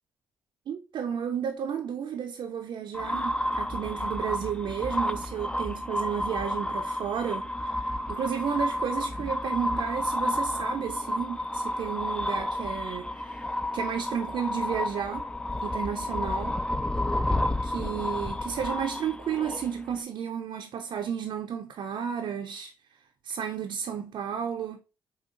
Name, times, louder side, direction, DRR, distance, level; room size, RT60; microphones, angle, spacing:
voice 1, 0.7-7.5 8.1-15.3 15.6-16.6 17.6-22.7 23.2-24.8, right 8 dB, 65° right, 0.5 m, -32 dB
sound 1, 2.9-20.0, left 1 dB, 10° left, 0.4 m, -31 dB
5.0 x 2.3 x 2.5 m
hypercardioid pair, 45°, 9 cm